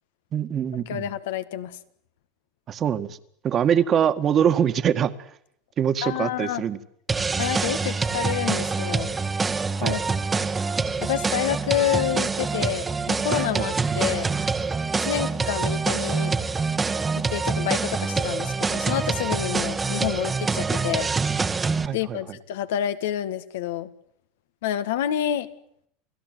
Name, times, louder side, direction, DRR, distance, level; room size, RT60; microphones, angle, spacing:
voice 1, 0.3-1.1 2.7-3.2 3.4-5.1 5.8-6.8 9.8-9.9 13.5-13.6 21.8-22.2, right 8 dB, 35° right, 11 dB, 1.8 m, -23 dB
voice 2, 0.9-1.8 6.0-6.6 7.4-9.1 9.8-10.0 11.0-14.3 15.0-16.3 17.3-21.1 21.9-23.9 24.6-25.5, left 11 dB, 80° left, 11 dB, 1.8 m, -28 dB
sound 1, 7.1-21.9, right 4 dB, 20° right, 1.3 m, -25 dB
28.5 x 17.5 x 9.5 m, 0.71 s
supercardioid pair, 110°, 0 cm